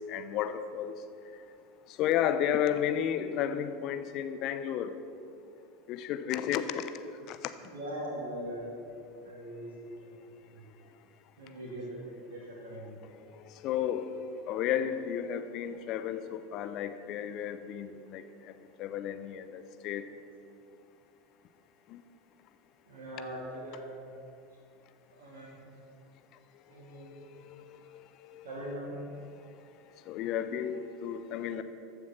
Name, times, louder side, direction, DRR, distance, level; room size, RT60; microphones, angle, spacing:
voice 1, 0.1-0.9 2.0-5.0 5.9-6.9 7.3-7.4 13.4-18.2 18.8-20.0 21.9-22.0 27.0-28.5 30.1-31.6, left 9 dB, 45° left, 11 dB, 0.7 m, -33 dB
voice 2, 7.6-8.8 9.2-10.1 10.4-10.7 11.4-13.0 22.8-24.1 25.1-25.6 26.7-27.3 28.4-29.0, right 1 dB, 65° right, -4 dB, 2.3 m, -41 dB
14.0 x 7.2 x 6.0 m, 2.6 s
figure-of-eight pair, 75°, 0 cm